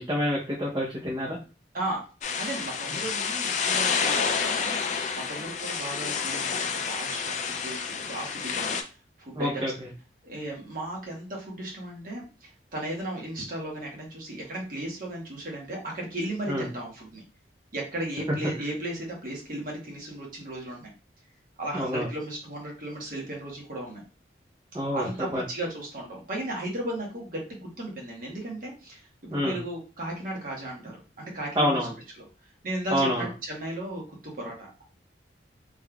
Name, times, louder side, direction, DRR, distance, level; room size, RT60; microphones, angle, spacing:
voice 1, 0.0-1.4 9.3-9.7 16.5-16.7 21.7-22.1 24.7-25.4 29.3-29.6 31.6-31.9 32.9-33.3, equal, 25° right, -4 dB, 0.7 m, -27 dB
voice 2, 1.7-2.1 2.3-8.8 9.2-9.7 10.2-17.2 17.7-20.9 21.6-24.0 24.9-31.8 32.2-32.3 32.6-34.8, right 1 dB, 50° right, -2 dB, 1.3 m, -35 dB
sound 1, 2.2-8.8, left 6 dB, 40° left, 0.4 m, -29 dB
3.6 x 3.2 x 2.3 m, 0.33 s
head